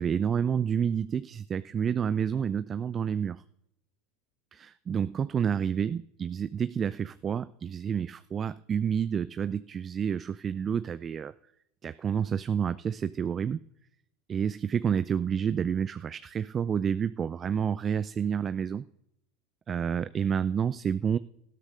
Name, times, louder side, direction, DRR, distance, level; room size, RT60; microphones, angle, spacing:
voice 1, 0.0-3.4 4.5-11.3 11.8-13.6 14.3-18.8 19.7-21.2, right 7 dB, 30° right, 15 dB, 0.3 m, -29 dB
19.0 x 13.0 x 2.6 m, 0.77 s
figure-of-eight pair, 80°, 0 cm